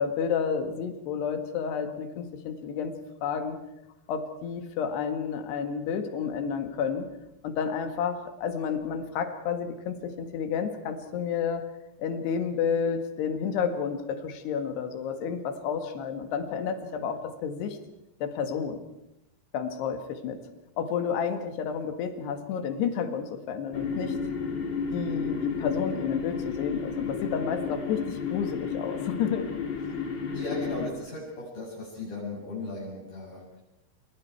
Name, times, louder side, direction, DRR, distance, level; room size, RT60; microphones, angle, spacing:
voice 1, 0.0-2.9 3.2-3.6 4.1-7.1 7.4-11.7 12.0-17.8 18.2-18.9 19.5-20.4 20.8-24.2 24.9-29.5, left 7 dB, 75° left, 7 dB, 3.9 m, -30 dB
sound 1, 23.7-30.9, left 5 dB, 30° left, 2.6 m, -32 dB
voice 2, 30.3-33.6, left 2 dB, 55° left, -5 dB, 8.4 m, -37 dB
29.0 x 28.5 x 4.7 m, 0.87 s
omnidirectional pair, 4.8 m